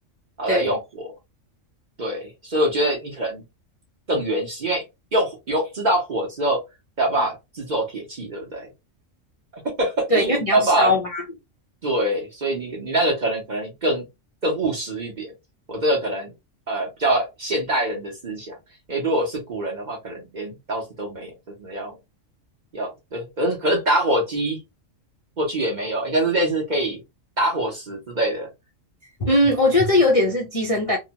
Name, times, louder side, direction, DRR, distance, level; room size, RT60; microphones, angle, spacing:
voice 1, 0.4-1.1 2.0-3.4 4.1-4.8 5.1-6.6 7.0-8.7 9.8-10.9 11.8-14.1 14.4-15.3 15.7-16.3 16.7-18.6 18.9-21.3 21.6-21.9 22.7-24.6 25.4-27.0 27.4-28.5, right 1 dB, 40° right, 0.8 m, -24 dB
voice 2, 10.1-11.2 29.2-31.0, left 1 dB, 40° left, 0.5 m, -19 dB
2.9 x 2.1 x 2.7 m
omnidirectional pair, 1.3 m